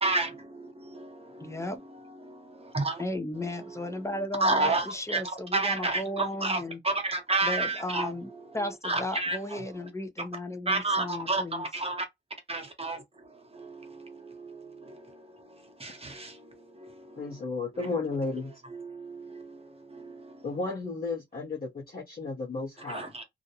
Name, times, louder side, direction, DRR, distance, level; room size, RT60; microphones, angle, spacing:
voice 1, 0.0-1.5 2.2-3.0 4.4-5.2 5.5-8.1 8.8-9.4 10.7-12.1 12.5-13.0 13.5-15.0 15.8-16.5 16.8-17.2 18.8-19.6 19.9-20.3 22.9-23.2, right 2 dB, 30° right, 0.8 m, -31 dB
voice 2, 1.4-1.8 3.0-6.8 7.4-11.7, left 1 dB, 15° left, 0.5 m, -35 dB
voice 3, 17.2-18.5 20.4-23.1, left 3 dB, 50° left, 0.8 m, -33 dB
2.5 x 2.1 x 2.8 m
wide cardioid pair, 125°, 19 cm